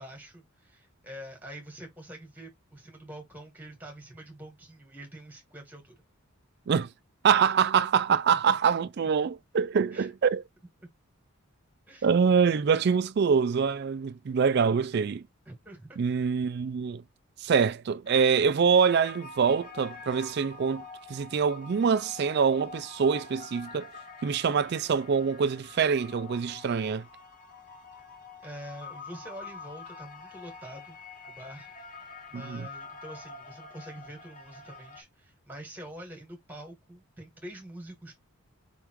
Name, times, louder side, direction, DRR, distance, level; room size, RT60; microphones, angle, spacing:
voice 1, 0.0-5.9 8.3-8.6 9.9-10.1 10.8-10.9 11.9-12.1 15.5-16.0 28.4-31.0 31.3-31.7 32.3-38.1, right 1 dB, 10° right, 1.8 m, -45 dB
voice 2, 7.2-10.4 12.0-15.2 16.0-17.0 17.4-20.8 21.1-23.9 24.2-27.0 32.3-32.7, right 6 dB, 45° right, 0.3 m, -25 dB
sound 1, 18.1-35.0, left 4 dB, 35° left, 0.8 m, -46 dB
4.5 x 3.5 x 3.0 m
head